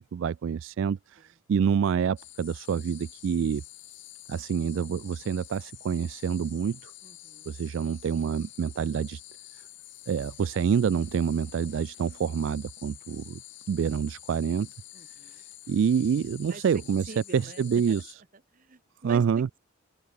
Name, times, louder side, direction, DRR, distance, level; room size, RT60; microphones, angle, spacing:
voice 1, 0.0-3.6 4.3-6.9 7.5-9.2 10.1-13.4 13.7-14.7 15.3-17.0 17.3-18.1 19.0-19.5, right 7 dB, 70° right, 0.3 m, -27 dB
sound 1, 2.2-18.1, left 16 dB, 65° left, 1.7 m, -48 dB
voice 2, 7.0-7.6 14.9-15.4 16.5-16.8 17.1-18.0 18.5-19.6, right 3 dB, 40° right, 1.0 m, -44 dB
open air
head